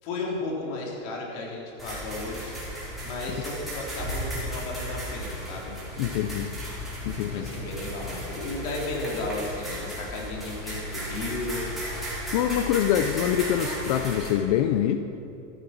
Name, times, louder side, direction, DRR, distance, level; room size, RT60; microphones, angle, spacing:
voice 1, 0.0-2.6 3.0-5.8 7.3-11.7 12.8-12.9, left 2 dB, 50° left, -2 dB, 3.7 m, -34 dB
sound 1, 1.8-14.3, equal, ahead, 3.8 m, -35 dB
voice 2, 6.0-6.5 7.1-7.5 12.3-15.0, left 10 dB, 30° left, 8 dB, 0.4 m, -25 dB
14.0 x 12.0 x 5.9 m, 2.8 s
supercardioid pair, 150°, 39 cm